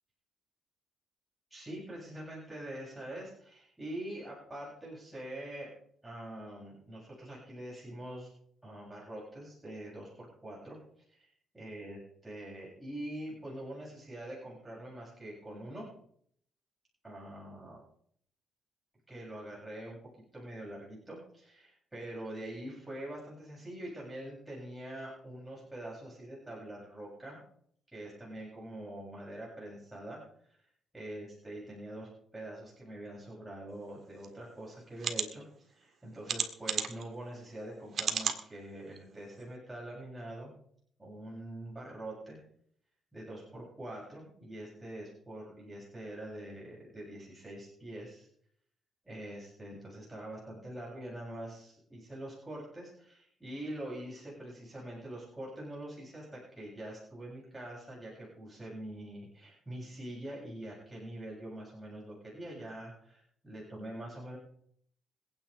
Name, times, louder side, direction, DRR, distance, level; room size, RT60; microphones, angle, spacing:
voice 1, 1.5-5.7 6.0-8.3 8.6-10.8 11.1-11.3 11.5-15.9 17.0-17.8 19.1-20.0 20.3-27.4 27.9-30.2 30.9-40.5 41.0-42.4 43.1-48.3 49.0-64.4, right 1 dB, 10° right, -5 dB, 7.5 m, -44 dB
sound 1, 34.2-34.3 35.0-35.3 36.3-37.0 37.9-38.4 39.0-39.1 39.4-39.5, right 6 dB, 55° right, 1.9 m, -32 dB
26.0 x 9.4 x 3.5 m, 0.63 s
cardioid pair, 90°, 0 cm